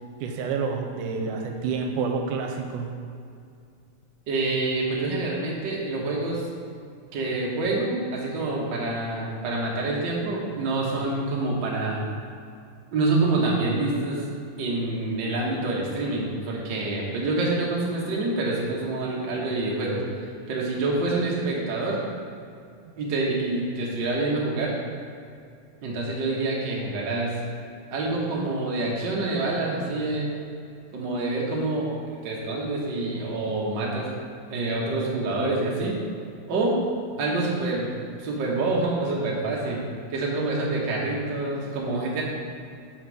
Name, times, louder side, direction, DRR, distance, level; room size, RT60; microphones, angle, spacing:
voice 1, 0.2-2.9, right 5 dB, 85° right, 3 dB, 2.1 m, -28 dB
voice 2, 4.3-6.4 7.1-12.0 12.9-14.2 14.6-20.0 20.5-22.0 23.0-24.7 25.8-27.4 27.9-30.3 30.9-32.0 32.2-34.1 34.5-36.0 36.5-36.8 37.2-37.9 38.2-39.8 40.1-42.2, right 2 dB, 60° right, -3 dB, 1.1 m, -26 dB
5.1 x 4.9 x 6.1 m, 2.4 s
omnidirectional pair, 3.6 m